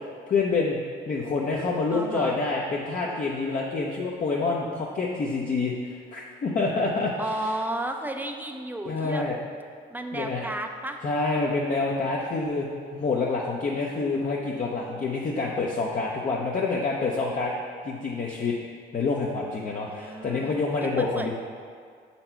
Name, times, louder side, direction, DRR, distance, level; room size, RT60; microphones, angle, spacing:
voice 1, 0.3-0.8 1.1-7.1 7.4-7.5 8.9-9.4 10.1-10.4 11.0-17.5 17.8-18.6 18.9-21.3, left 3 dB, 40° left, -3 dB, 0.7 m, -27 dB
voice 2, 1.9-2.4 7.2-9.3 9.9-11.0 19.9-20.6 21.0-21.3, right 1 dB, 10° right, 5 dB, 0.5 m, -33 dB
6.8 x 4.3 x 4.4 m, 2.1 s
cardioid pair, 90°, 20 cm